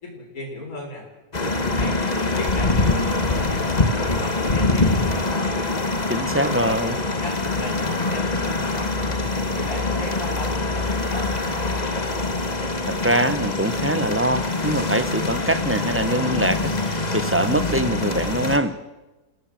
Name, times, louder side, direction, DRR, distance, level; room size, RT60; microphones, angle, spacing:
voice 1, 0.0-1.0 1.5-5.2 6.4-9.1 9.5-11.7, left 1 dB, 60° left, 0 dB, 4.7 m, -35 dB
sound 1, 1.3-18.6, left 2 dB, 25° left, 1.8 m, -24 dB
voice 2, 6.1-6.9 12.9-18.8, right 1 dB, 10° right, 11 dB, 0.9 m, -23 dB
27.5 x 16.0 x 7.7 m, 1.1 s
omnidirectional pair, 1.7 m